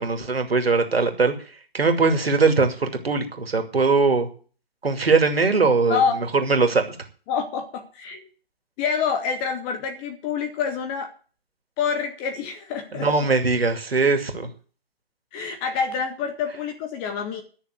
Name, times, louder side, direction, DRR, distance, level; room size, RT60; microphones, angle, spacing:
voice 1, 0.0-1.3 1.7-4.3 4.8-6.8 12.9-14.5, right 4 dB, 70° right, 7 dB, 2.6 m, -21 dB
voice 2, 7.3-8.3 8.8-11.1 11.8-13.1 15.3-17.4, left 6 dB, 10° left, 7 dB, 0.6 m, -27 dB
12.0 x 6.6 x 9.3 m, 0.39 s
figure-of-eight pair, 135°, 31 cm